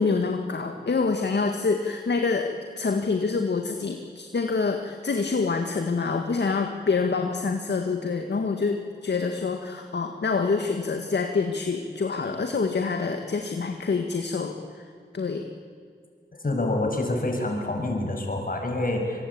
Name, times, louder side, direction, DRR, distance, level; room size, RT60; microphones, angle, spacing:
voice 1, 0.0-14.8 15.1-15.5, left 4 dB, 65° left, 5 dB, 1.8 m, -26 dB
voice 2, 16.4-19.2, left 2 dB, 50° left, 2 dB, 6.8 m, -27 dB
25.0 x 22.5 x 8.7 m, 2.2 s
cardioid pair, 50°, 19 cm